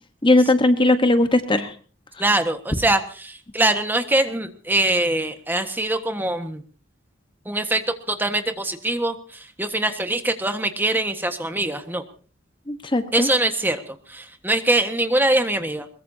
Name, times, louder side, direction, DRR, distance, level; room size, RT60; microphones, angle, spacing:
voice 1, 0.2-1.7 12.7-13.3, left 2 dB, 25° left, 9 dB, 1.2 m, -18 dB
voice 2, 2.2-6.6 7.4-7.8 8.1-12.0 13.1-15.9, right 1 dB, 10° right, 7 dB, 1.5 m, -23 dB
22.0 x 22.0 x 2.8 m, 0.39 s
head